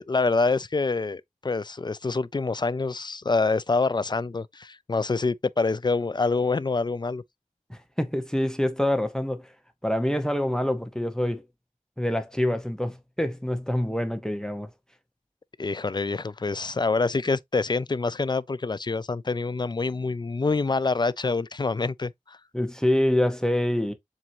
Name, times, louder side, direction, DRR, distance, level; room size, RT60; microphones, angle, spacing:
voice 1, 0.0-7.2 15.6-22.4, left 3 dB, 30° left, 0.3 m, -26 dB
voice 2, 7.7-9.5 9.8-11.4 12.0-14.7 22.5-23.9, left 1 dB, 5° left, 0.8 m, -26 dB
7.4 x 2.7 x 2.7 m
wide cardioid pair, 55°, 14 cm